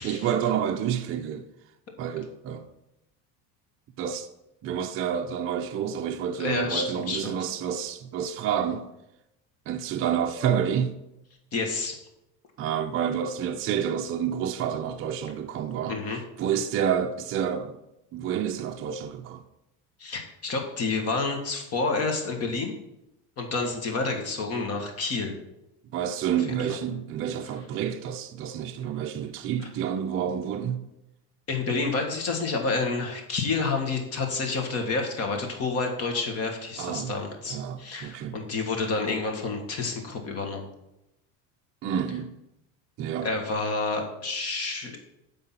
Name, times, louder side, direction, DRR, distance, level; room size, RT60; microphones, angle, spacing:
voice 1, 0.0-1.5 2.0-2.7 4.0-4.3 4.6-8.9 9.7-11.0 12.6-16.0 16.4-17.8 18.1-19.4 25.9-30.8 36.8-37.1 37.5-38.4 41.8-42.4 43.0-43.3, right 8 dB, 35° right, 0.5 m, -29 dB
voice 2, 6.4-7.4 11.5-12.0 15.9-16.2 20.0-22.7 23.4-25.3 26.5-26.6 31.5-40.7 43.2-45.0, left 3 dB, 40° left, 1.6 m, -29 dB
9.7 x 3.8 x 7.3 m
cardioid pair, 155°, 39 cm